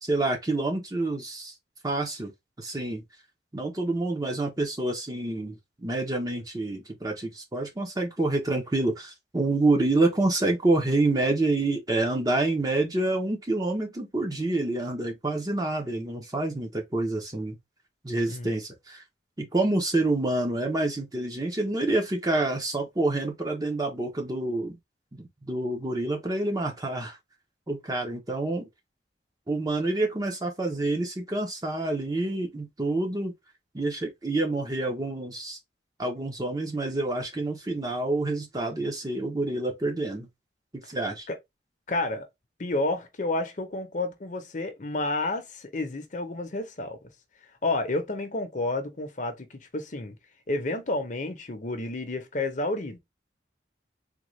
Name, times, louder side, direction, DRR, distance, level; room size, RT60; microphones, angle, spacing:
voice 1, 0.0-1.5 1.8-2.3 2.6-3.0 3.5-17.6 18.0-19.0 19.4-24.8 25.1-27.2 27.7-28.7 29.5-33.3 33.7-35.6 36.0-40.3 40.9-41.3, right 2 dB, 20° right, 0.7 m, -27 dB
voice 2, 18.3-18.6 41.3-41.4 41.9-42.3 42.6-47.0 47.6-50.2 50.5-53.0, left 2 dB, 45° left, 0.7 m, -30 dB
3.7 x 2.3 x 3.1 m
head